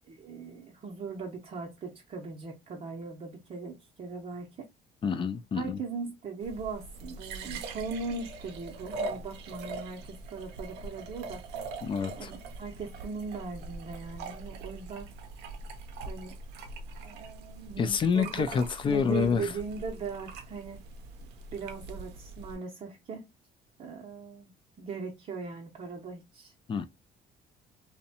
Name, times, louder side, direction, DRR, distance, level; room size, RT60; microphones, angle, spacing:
voice 1, 0.1-4.7 5.6-11.4 12.2-15.1 16.0-16.4 17.0-17.9 18.1-18.5 18.9-20.8 21.5-23.3 23.8-24.5 24.8-26.5, right 4 dB, 40° right, 0.6 m, -39 dB
voice 2, 5.0-5.8 11.8-12.3 17.8-19.5 26.7-26.9, left 6 dB, 30° left, 0.3 m, -28 dB
sound 1, 6.4-22.6, right 3 dB, 85° right, 0.5 m, -42 dB
2.6 x 2.1 x 2.7 m
cardioid pair, 110°, 17 cm